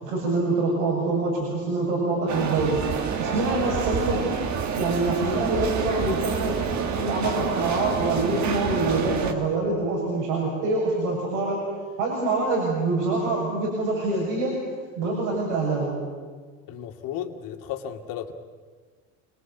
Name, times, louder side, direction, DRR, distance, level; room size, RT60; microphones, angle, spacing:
voice 1, 0.0-2.8 3.1-4.4 4.7-11.6 12.0-14.6 15.0-16.0, right 2 dB, 85° right, -3 dB, 7.1 m, -25 dB
sound 1, 2.3-9.3, right 6 dB, 50° right, 2.5 m, -28 dB
voice 2, 16.7-18.3, left 10 dB, 65° left, 5 dB, 2.5 m, -34 dB
28.0 x 19.5 x 8.4 m, 1.5 s
supercardioid pair, 80°, 36 cm